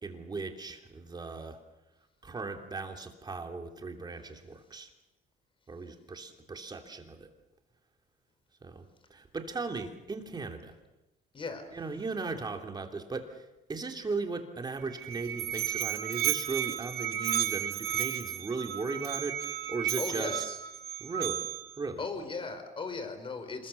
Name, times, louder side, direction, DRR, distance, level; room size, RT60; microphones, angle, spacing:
voice 1, 0.0-1.6 2.2-4.9 5.7-7.3 8.6-10.7 11.7-20.4 21.0-21.4 21.8-22.0, right 3 dB, 25° right, 4 dB, 3.0 m, -37 dB
voice 2, 11.3-11.7 20.0-20.6 22.0-23.7, left 4 dB, 30° left, 8 dB, 4.8 m, -37 dB
Musical instrument, 14.8-21.8, right 11 dB, 70° right, 1.6 m, -33 dB
26.5 x 21.0 x 7.2 m, 1.0 s
cardioid pair, 110°, 17 cm